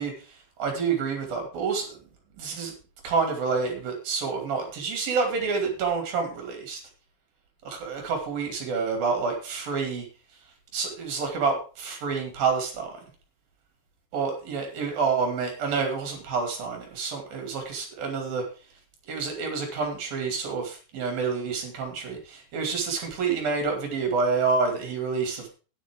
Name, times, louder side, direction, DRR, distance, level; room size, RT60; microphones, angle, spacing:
voice 1, 0.0-2.0 2.4-2.7 3.0-6.8 7.6-10.1 10.7-13.0 14.1-18.4 19.1-25.5, right 5 dB, 60° right, 3 dB, 4.3 m, -28 dB
13.5 x 10.0 x 3.7 m, 0.35 s
omnidirectional pair, 4.8 m